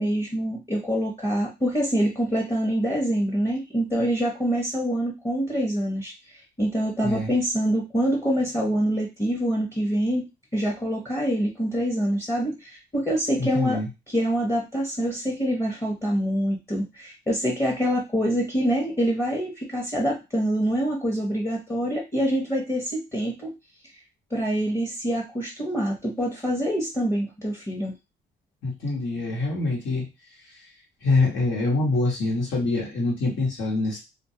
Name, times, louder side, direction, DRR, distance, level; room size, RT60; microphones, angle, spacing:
voice 1, 0.0-10.2 10.5-23.5 24.3-27.9, equal, 15° left, -2 dB, 0.8 m, -25 dB
voice 2, 13.4-13.9 28.6-30.0 31.0-34.0, left 2 dB, 75° left, -4 dB, 1.1 m, -25 dB
2.2 x 2.1 x 2.7 m, 0.25 s
cardioid pair, 90°, 20 cm